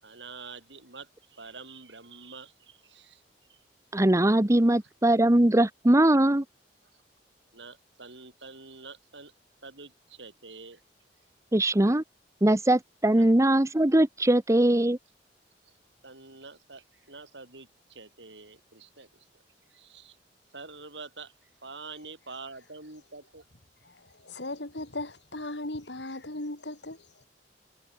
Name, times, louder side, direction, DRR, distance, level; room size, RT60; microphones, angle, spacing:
voice 1, 0.0-3.2 3.5-3.6 7.5-9.3 9.6-10.8 13.1-13.3 15.6-15.7 16.0-19.3 19.7-20.2 20.5-23.4, right 4 dB, 75° right, 7.4 m, -46 dB
voice 2, 3.9-6.4 11.5-12.0 12.4-15.0, right 1 dB, 15° right, 0.9 m, -21 dB
voice 3, 23.8-27.2, left 2 dB, 70° left, 3.3 m, -38 dB
head